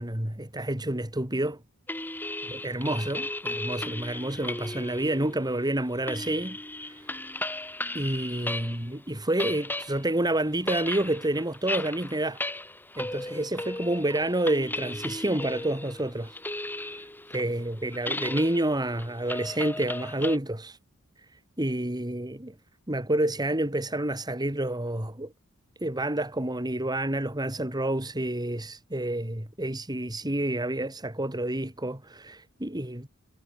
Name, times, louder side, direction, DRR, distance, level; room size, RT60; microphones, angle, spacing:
voice 1, 0.0-1.6 2.5-6.6 6.9-7.0 7.9-12.4 13.0-16.4 16.9-17.0 17.3-20.8 21.6-22.5 22.9-25.3 25.8-33.1, right 1 dB, 20° right, 3.0 m, -29 dB
sound 1, 1.9-8.9 9.2-20.4, left 1 dB, 10° left, 3.5 m, -36 dB
head